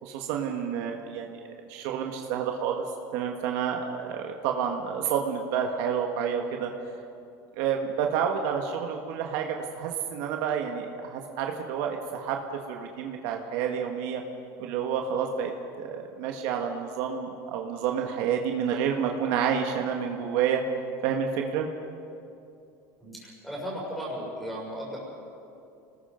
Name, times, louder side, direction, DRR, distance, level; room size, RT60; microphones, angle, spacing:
voice 1, 0.0-1.4 1.7-2.8 3.1-6.7 7.5-12.4 12.7-14.2 14.6-20.6 21.0-21.7, right 7 dB, 60° right, 2 dB, 1.7 m, -29 dB
voice 2, 23.0-25.0, equal, ahead, -4 dB, 5.6 m, -36 dB
28.0 x 20.0 x 5.2 m, 2.6 s
cardioid pair, 170°, 8 cm